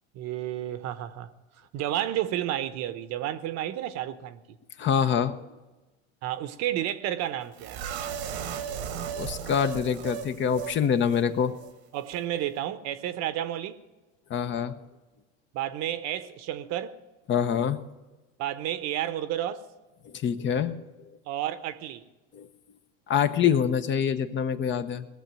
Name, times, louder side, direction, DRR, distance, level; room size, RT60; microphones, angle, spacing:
voice 1, 0.1-4.4 6.2-7.8 11.9-13.8 15.5-17.0 18.4-19.6 21.3-22.0, right 12 dB, 55° right, 1.0 m, -31 dB
voice 2, 4.8-5.4 8.8-8.9 9.1-11.6 14.3-14.8 17.3-17.8 20.0-20.8 22.3-22.5 23.1-25.1, left 8 dB, 35° left, 0.9 m, -25 dB
sound 1, 7.6-10.8 11.1-11.2 11.6-11.7, right 8 dB, 85° right, 1.6 m, -35 dB
19.0 x 7.0 x 9.0 m
supercardioid pair, 100°, 32 cm